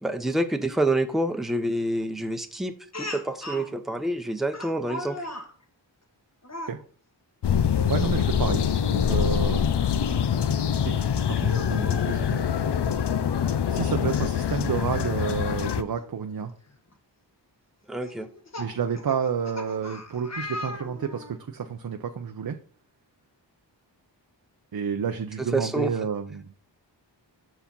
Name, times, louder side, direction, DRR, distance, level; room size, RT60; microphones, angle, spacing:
voice 1, 0.0-5.3 17.9-18.3 25.4-25.9, right 1 dB, ahead, 7 dB, 0.8 m, -27 dB
Speech, 2.9-3.7 4.5-5.5 6.4-6.8 8.0-8.3 8.7-8.8 10.4-10.5 11.3-12.2 13.6-13.7 14.0-14.1 16.0-16.1 16.7-16.9 18.0-21.4, left 1 dB, 35° left, 1.5 m, -38 dB
sound 1, 7.4-15.8, left 8 dB, 65° left, 0.6 m, -24 dB
voice 2, 7.8-9.7 10.8-12.4 13.7-16.5 18.6-22.6 24.7-26.4, right 7 dB, 55° right, 5 dB, 0.7 m, -30 dB
5.9 x 4.7 x 5.3 m, 0.44 s
cardioid pair, 40°, 44 cm